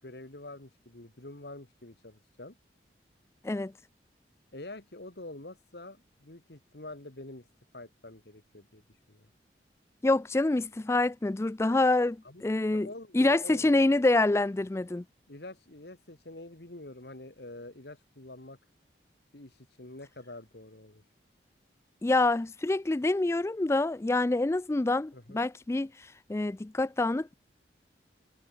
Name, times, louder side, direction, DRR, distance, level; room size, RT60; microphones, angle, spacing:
voice 1, 0.0-2.6 4.5-7.5 7.7-9.3 12.2-12.4 12.7-13.8 15.3-18.6 19.3-21.0 25.1-25.4, left 2 dB, 65° left, 2.3 m, -46 dB
voice 2, 10.0-12.9 13.1-15.0 22.0-27.3, left 2 dB, 15° left, 0.3 m, -26 dB
head